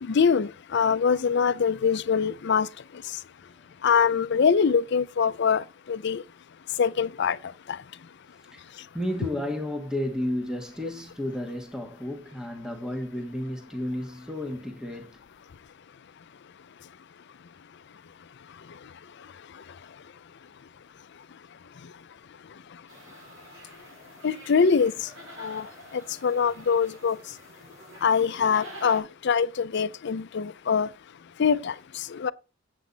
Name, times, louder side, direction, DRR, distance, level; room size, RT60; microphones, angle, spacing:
voice 1, 0.0-2.7 3.8-6.2 6.8-7.4 7.7-7.8 24.2-24.9 25.4-25.7 25.9-27.2 28.0-30.9 31.4-32.3, left 6 dB, 60° left, 0.5 m, -24 dB
voice 2, 8.5-15.1, left 1 dB, 5° right, 1.3 m, -32 dB
sound 1, 22.9-29.0, equal, 85° right, 5.0 m, -46 dB
8.3 x 7.8 x 4.0 m
head